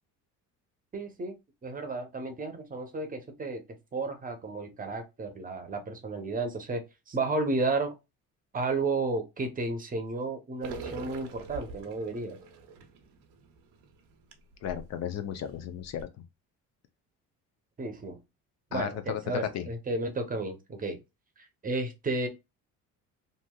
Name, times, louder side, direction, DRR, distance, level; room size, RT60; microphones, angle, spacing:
voice 1, 0.9-1.3 1.6-3.6 3.9-6.8 7.1-7.9 8.5-12.4 17.8-18.2 18.7-21.0 21.6-22.3, right 3 dB, 25° right, 0.7 m, -32 dB
sound 1, 10.6-14.9 15.3-15.4 15.8-16.0, right 4 dB, 90° right, 0.7 m, -44 dB
voice 2, 14.6-16.1 18.7-19.7, left 9 dB, 55° left, 0.5 m, -34 dB
2.9 x 2.6 x 2.2 m
cardioid pair, 115°, 33 cm